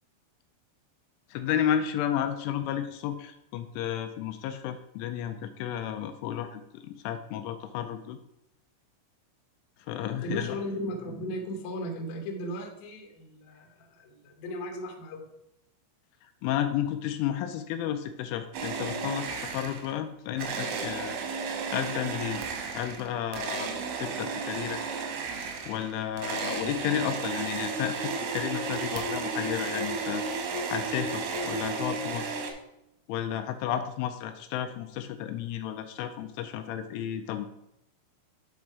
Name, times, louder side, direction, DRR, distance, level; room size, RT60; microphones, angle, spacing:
voice 1, 1.3-8.2 9.9-10.6 16.4-21.2 21.7-22.4 22.7-24.8 25.7-30.2 30.7-32.5 33.1-37.5, left 10 dB, 85° left, 7 dB, 3.0 m, -32 dB
voice 2, 10.2-15.3, equal, 70° left, 2 dB, 2.4 m, -36 dB
sound 1, 18.5-20.0 20.4-32.5, right 4 dB, 90° right, 3.5 m, -33 dB
8.5 x 4.1 x 4.7 m, 0.84 s
omnidirectional pair, 5.6 m